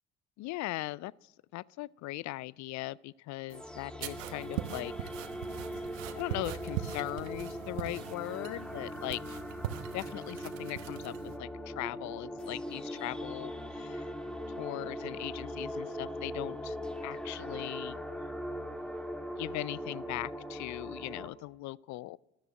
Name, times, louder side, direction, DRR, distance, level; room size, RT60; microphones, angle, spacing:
voice 1, 0.4-5.1 5.7-5.8 6.2-9.4 9.9-14.1 14.6-16.8 17.0-18.0 19.4-22.2, left 18 dB, 50° left, 0.4 m, -39 dB
sound 1, 3.5-21.3, equal, ahead, 1.5 m, -40 dB
sound 2, 4.0-11.4, right 13 dB, 75° right, 1.1 m, -41 dB
13.0 x 11.0 x 8.7 m
hypercardioid pair, 55°, 39 cm